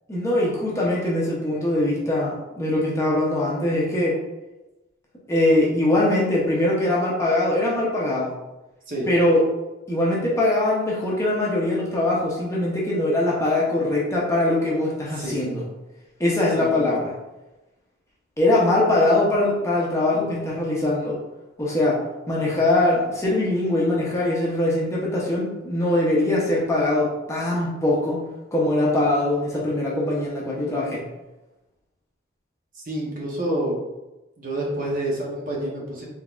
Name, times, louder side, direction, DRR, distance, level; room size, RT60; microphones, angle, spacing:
voice 1, 0.1-4.2 5.3-8.3 9.1-9.4 9.9-15.6 16.2-17.1 18.4-21.2 21.6-22.0 22.3-28.2 28.5-31.1, left 1 dB, 15° left, -5 dB, 0.7 m, -22 dB
voice 2, 16.6-16.9 32.7-33.8 34.4-36.0, right 1 dB, 45° right, -3 dB, 0.9 m, -28 dB
3.8 x 3.4 x 2.4 m, 1.0 s
head